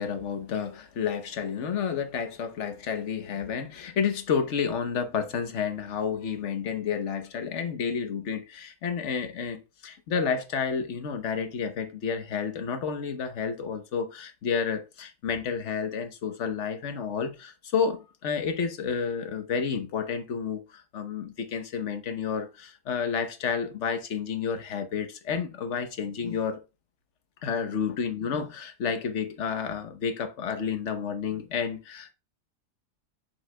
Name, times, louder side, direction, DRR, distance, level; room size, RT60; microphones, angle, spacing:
voice 1, 0.0-26.6 27.4-32.1, left 6 dB, 55° left, 1.2 m, -30 dB
7.6 x 6.0 x 2.2 m
omnidirectional pair, 1.5 m